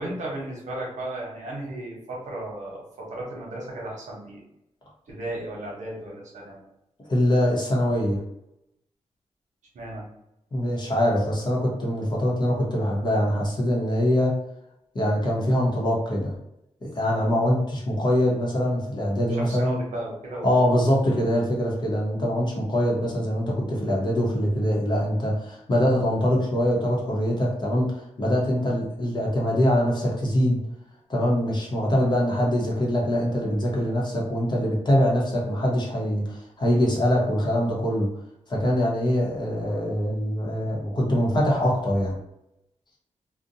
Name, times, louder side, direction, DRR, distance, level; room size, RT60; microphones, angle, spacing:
voice 1, 0.0-4.4 5.1-6.6 9.7-10.1 19.4-20.6, right 1 dB, 80° right, -3 dB, 0.9 m, -35 dB
voice 2, 7.1-8.2 10.5-14.3 14.9-16.3 16.8-19.8 20.4-30.6 31.1-38.1 38.5-42.2, equal, 35° left, -3 dB, 0.8 m, -23 dB
2.5 x 2.1 x 2.7 m, 0.83 s
wide cardioid pair, 145°, 12 cm